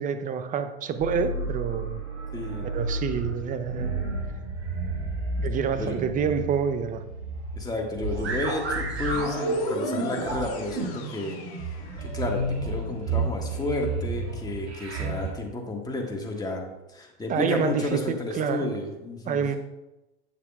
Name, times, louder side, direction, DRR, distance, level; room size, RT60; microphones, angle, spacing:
voice 1, 0.0-2.0 2.7-3.9 5.4-7.0 17.3-18.7 19.3-19.5, right 6 dB, 25° right, 9 dB, 0.6 m, -27 dB
sound 1, 1.0-15.3, right 3 dB, 90° right, 1.3 m, -31 dB
voice 2, 2.3-2.7 5.7-5.9 7.5-11.4 12.0-16.6 16.9-19.4, left 2 dB, 10° left, 0 dB, 1.5 m, -31 dB
sound 2, 9.0-12.5, left 5 dB, 60° left, 1.6 m, -38 dB
8.5 x 6.7 x 2.4 m, 1.0 s
hypercardioid pair, 100°, 32 cm